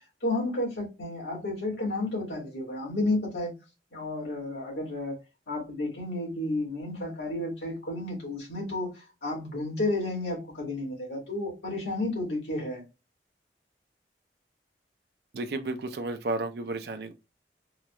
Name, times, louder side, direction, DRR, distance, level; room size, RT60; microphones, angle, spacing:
voice 1, 0.2-3.5 3.9-5.2 5.5-12.8, left 2 dB, 80° left, 1.9 m, -32 dB
voice 2, 15.3-17.1, right 2 dB, 65° right, 0.5 m, -32 dB
3.8 x 2.3 x 2.9 m
head